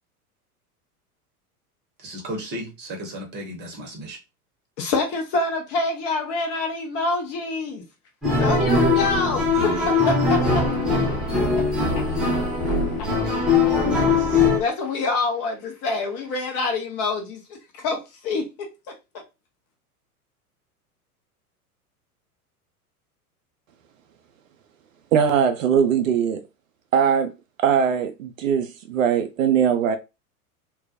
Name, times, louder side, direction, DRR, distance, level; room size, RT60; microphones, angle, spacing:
voice 1, 2.0-4.2, equal, 25° right, 0.9 m, -34 dB
voice 2, 4.8-7.8 8.4-10.6 11.2-13.7 14.1-18.7, left 3 dB, 35° left, 0.7 m, -27 dB
sound 1, 8.2-14.6, left 3 dB, ahead, 0.3 m, -21 dB
voice 3, 25.1-26.4 26.9-27.3 27.6-30.0, right 7 dB, 65° right, 0.5 m, -20 dB
2.3 x 2.1 x 2.5 m
figure-of-eight pair, 90°, 44 cm